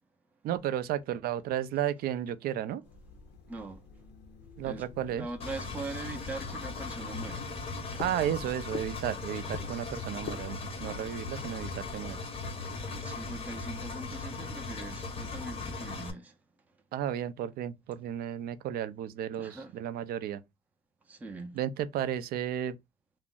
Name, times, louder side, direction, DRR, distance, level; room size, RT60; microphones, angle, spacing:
voice 1, 0.4-2.8 4.6-5.3 8.0-12.2 16.9-20.4 21.5-22.8, right 10 dB, 65° right, 0.4 m, -33 dB
sound 1, 2.8-12.0, left 7 dB, 80° left, 0.6 m, -47 dB
voice 2, 3.5-4.1 4.6-7.5 12.9-16.4 19.3-19.8 21.0-21.6, right 2 dB, 10° right, 0.5 m, -42 dB
Engine, 5.4-16.1, left 3 dB, 35° left, 0.6 m, -38 dB
2.4 x 2.0 x 3.5 m
cardioid pair, 110°, 17 cm